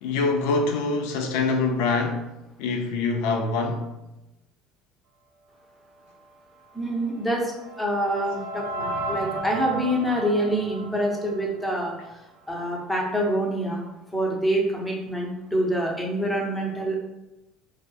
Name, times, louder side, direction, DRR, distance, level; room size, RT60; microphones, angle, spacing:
voice 1, 0.0-2.2 2.6-3.9, left 3 dB, 85° left, 0.3 m, -24 dB
voice 2, 6.7-7.5 7.8-11.9 12.5-13.8 14.1-16.9, right 1 dB, 5° left, 0.5 m, -26 dB
sound 1, 6.9-12.1, right 2 dB, 90° right, 0.3 m, -35 dB
2.6 x 2.2 x 2.3 m
cardioid pair, 135°, 0 cm